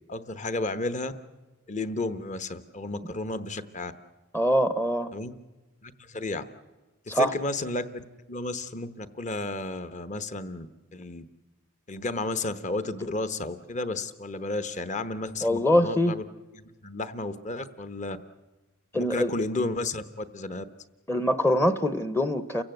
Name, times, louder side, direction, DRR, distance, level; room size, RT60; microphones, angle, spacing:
voice 1, 0.1-1.1 1.7-3.9 5.1-5.3 5.8-6.4 7.1-10.7 10.9-11.3 11.9-16.2 16.5-18.2 18.9-20.6, left 2 dB, 35° left, 12 dB, 1.1 m, -32 dB
voice 2, 4.3-5.1 7.1-7.3 15.4-16.2 18.9-19.3 21.1-22.6, equal, 10° left, 12 dB, 0.8 m, -23 dB
29.5 x 16.0 x 7.9 m, 1.2 s
head